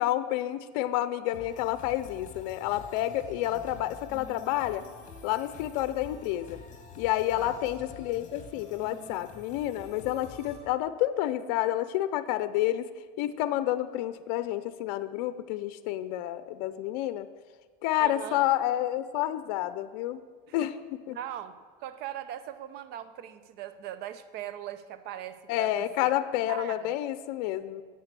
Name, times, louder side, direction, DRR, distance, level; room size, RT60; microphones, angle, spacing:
voice 1, 0.0-4.9 5.2-6.6 7.0-12.9 13.2-17.3 17.8-20.2 20.5-20.8 21.1-21.2 25.5-27.8, left 13 dB, 70° left, 13 dB, 0.6 m, -29 dB
sound 1, 1.3-10.6, left 5 dB, 40° left, 2.2 m, -47 dB
voice 2, 18.0-18.5 20.5-20.6 21.1-26.1 26.5-26.9, right 11 dB, 55° right, 12 dB, 0.8 m, -40 dB
9.3 x 8.0 x 6.8 m, 1.5 s
supercardioid pair, 120°, 21 cm